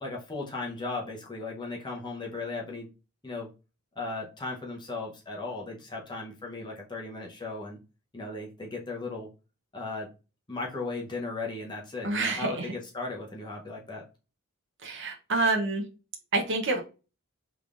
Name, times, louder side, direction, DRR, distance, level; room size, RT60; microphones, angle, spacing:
voice 1, 0.0-2.9 3.2-3.5 4.0-7.8 8.1-9.3 9.7-10.1 10.5-14.0, left 3 dB, 20° left, -2 dB, 0.7 m, -36 dB
voice 2, 12.0-12.7 14.8-15.8 16.3-16.8, right 3 dB, 55° right, 2 dB, 0.7 m, -27 dB
3.6 x 3.4 x 2.4 m, 0.32 s
head